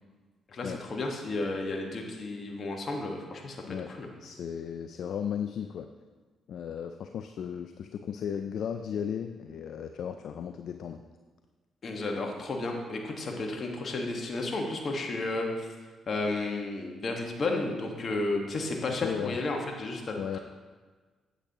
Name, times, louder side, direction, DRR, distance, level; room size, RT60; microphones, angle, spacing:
voice 1, 0.5-3.6 4.0-4.1 11.8-15.7 16.1-20.4, left 2 dB, 50° left, 1 dB, 1.5 m, -32 dB
voice 2, 4.2-5.9 6.5-11.0 19.0-19.4 20.2-20.4, left 8 dB, 70° left, 7 dB, 0.4 m, -35 dB
8.6 x 8.0 x 3.0 m, 1.4 s
hypercardioid pair, 50°, 0 cm